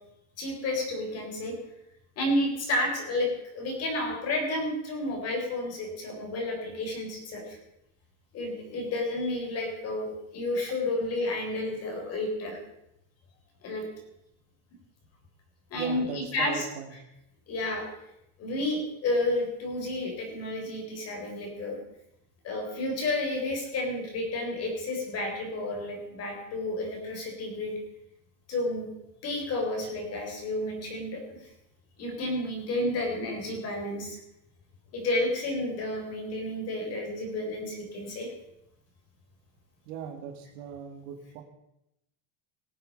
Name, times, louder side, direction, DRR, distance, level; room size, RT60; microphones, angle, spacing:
voice 1, 0.4-1.5 2.2-7.6 8.3-12.6 13.6-13.8 15.7-16.7 17.5-17.9 18.4-21.8 22.4-27.8 28.5-28.9 29.2-31.2 32.0-34.2 34.9-38.3, left 1 dB, 35° left, 2 dB, 3.9 m, -31 dB
voice 2, 15.7-16.9 39.9-41.4, right 8 dB, 60° right, 5 dB, 2.1 m, -38 dB
18.5 x 7.5 x 5.3 m, 0.84 s
cardioid pair, 165°, 45 cm